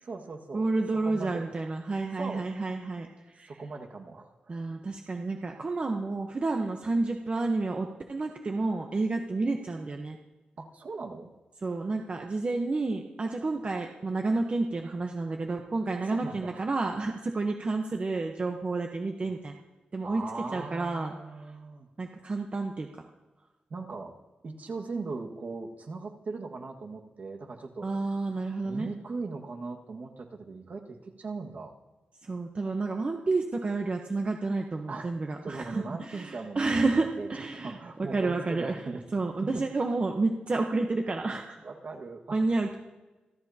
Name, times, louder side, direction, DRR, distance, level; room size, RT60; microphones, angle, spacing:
voice 1, 0.0-0.6 1.0-1.5 2.2-2.4 3.5-4.6 10.6-11.3 16.1-16.7 19.2-19.3 20.0-21.9 23.7-24.1 24.4-27.9 28.6-31.8 34.9-39.7 41.6-42.4, right 3 dB, 60° right, 1 dB, 1.8 m, -39 dB
voice 2, 0.5-3.5 4.5-10.2 11.6-19.5 19.9-20.2 20.5-21.1 22.0-22.9 27.8-28.9 32.2-38.8 39.1-41.6 42.3-42.7, right 3 dB, 40° right, 3 dB, 1.1 m, -30 dB
27.5 x 13.0 x 2.9 m, 1.1 s
cardioid pair, 85°, 3 cm